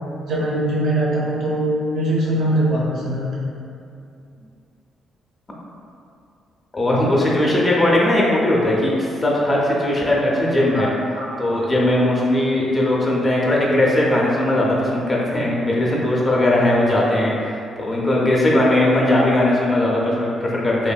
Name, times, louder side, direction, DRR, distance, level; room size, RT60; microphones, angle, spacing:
voice 1, 0.3-3.3 10.7-10.9 11.1-11.6, right 1 dB, 75° right, -6 dB, 0.8 m, -22 dB
voice 2, 6.7-10.9 11.4-20.9, left 1 dB, 25° left, -4 dB, 0.5 m, -19 dB
2.9 x 2.6 x 2.2 m, 2.5 s
cardioid pair, 90°, 0 cm